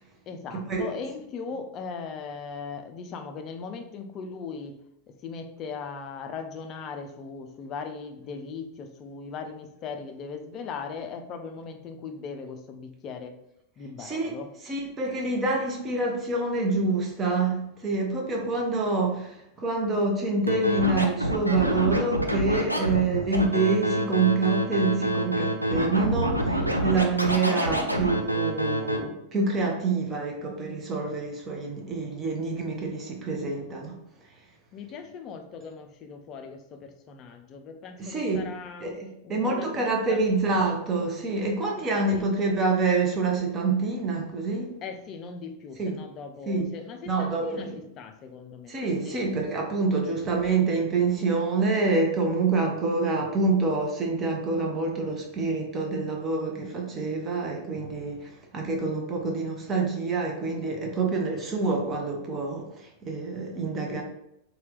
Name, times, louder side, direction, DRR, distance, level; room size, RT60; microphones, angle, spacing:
voice 1, 0.3-4.8 5.1-13.4 13.8-14.5 34.7-38.9 39.2-40.2 41.8-42.6 44.8-49.3, left 5 dB, 35° left, 6 dB, 0.4 m, -39 dB
voice 2, 14.0-14.3 14.7-34.0 38.0-38.4 38.8-44.7 45.8-45.9 46.5-46.7 47.1-47.5 48.7-64.0, right 3 dB, 25° right, 1 dB, 0.6 m, -27 dB
Scratching (performance technique), 20.5-29.0, right 1 dB, 90° right, 0.3 m, -26 dB
2.8 x 2.2 x 3.3 m, 0.79 s
figure-of-eight pair, 90°, 0 cm